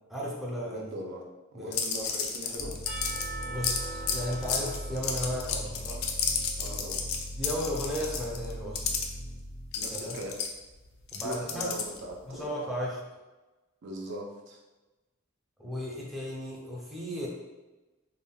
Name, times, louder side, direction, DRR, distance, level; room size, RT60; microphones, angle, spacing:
voice 1, 0.1-0.9 1.5-1.8 3.5-6.0 7.4-8.9 9.9-10.2 11.1-11.7 12.3-13.0 15.6-17.3, equal, ahead, -6 dB, 0.5 m, -35 dB
voice 2, 0.6-1.3 1.5-2.7 6.6-7.0 9.7-10.4 11.1-12.7 13.8-14.6, equal, 60° right, 0 dB, 0.4 m, -40 dB
sound 1, 1.7-9.1 9.7-12.1, left 6 dB, 90° left, 0.4 m, -31 dB
sound 2, 2.6-10.0, equal, 60° left, 0.7 m, -40 dB
Percussion / Church bell, 2.9-6.8, right 3 dB, 45° right, 1.0 m, -43 dB
3.5 x 2.1 x 2.2 m, 1.1 s
head